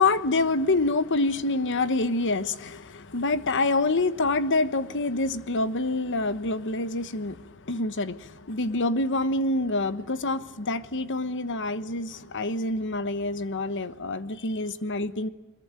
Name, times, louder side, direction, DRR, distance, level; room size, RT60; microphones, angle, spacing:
voice 1, 0.0-15.3, left 2 dB, 55° left, 1.2 m, -26 dB
24.0 x 21.5 x 9.0 m
head